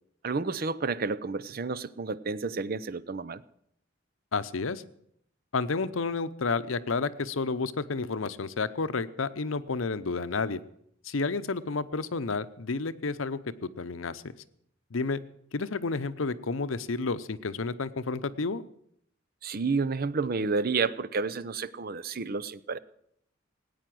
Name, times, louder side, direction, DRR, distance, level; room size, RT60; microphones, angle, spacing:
voice 1, 0.2-3.4 19.4-22.8, right 4 dB, 45° right, 16 dB, 0.6 m, -30 dB
voice 2, 4.3-4.8 5.5-10.6 11.0-14.2 14.9-15.2 15.5-18.6, left 4 dB, 85° left, 14 dB, 0.8 m, -31 dB
18.0 x 9.4 x 7.7 m, 0.71 s
head